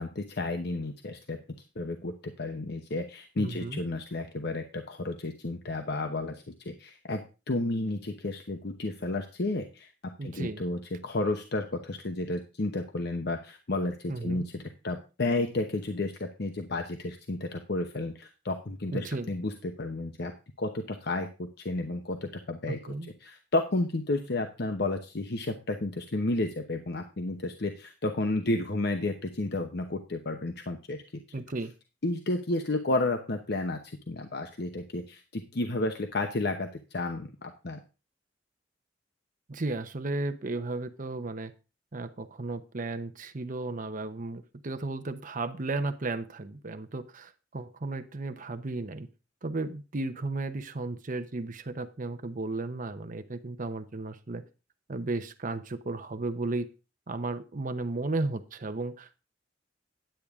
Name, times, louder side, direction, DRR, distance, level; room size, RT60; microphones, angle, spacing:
voice 1, 0.0-1.4 1.8-20.3 20.6-22.8 23.2-31.0 32.0-33.8 34.1-37.8, left 2 dB, 60° left, 5 dB, 0.9 m, -32 dB
voice 2, 3.4-3.8 10.2-10.6 14.1-14.5 18.9-19.3 22.7-23.1 31.3-31.7 39.5-41.5 41.9-49.1 49.4-54.4 54.9-56.7 57.1-59.3, right 2 dB, 45° right, 9 dB, 0.8 m, -34 dB
10.0 x 8.5 x 3.6 m, 0.32 s
head